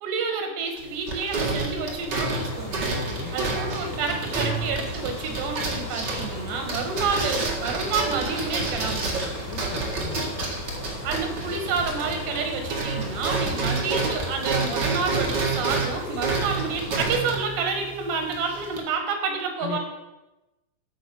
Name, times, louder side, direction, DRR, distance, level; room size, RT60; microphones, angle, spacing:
voice 1, 0.0-2.9 3.3-9.0 11.0-19.8, right 4 dB, 85° right, 4 dB, 3.7 m, -29 dB
sound 1, 0.8-12.4 12.7-18.8, right 3 dB, 55° right, 1.1 m, -29 dB
sound 2, 1.7-17.4, left 1 dB, 25° left, 2.2 m, -36 dB
voice 2, 2.9-3.4 9.5-10.3 19.6-19.8, left 8 dB, 80° left, 3 dB, 1.9 m, -36 dB
sound 3, 4.9-14.8, left 3 dB, 50° left, 2.7 m, -47 dB
13.5 x 5.2 x 6.3 m, 1.0 s
omnidirectional pair, 4.8 m